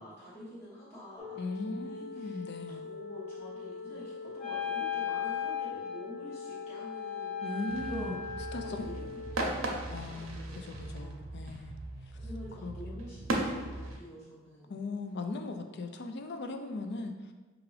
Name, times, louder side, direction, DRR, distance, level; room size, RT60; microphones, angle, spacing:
voice 1, 0.0-2.4 2.7-7.5 7.9-8.2 8.5-11.5 12.1-14.7, left 1 dB, 30° left, -9 dB, 1.0 m, -47 dB
sound 1, 1.2-9.3, left 4 dB, 10° right, 0.5 m, -43 dB
voice 2, 1.4-2.9 7.4-8.1 8.5-8.9 9.9-11.8 12.6-13.0 14.7-17.3, left 3 dB, 55° left, 6 dB, 0.4 m, -38 dB
Wind instrument woodwind instrument, 4.4-8.9, left 7 dB, 85° left, 1.3 m, -37 dB
sound 2, 7.7-14.0, right 1 dB, 75° right, 0.7 m, -37 dB
5.8 x 2.5 x 3.2 m, 1.2 s
head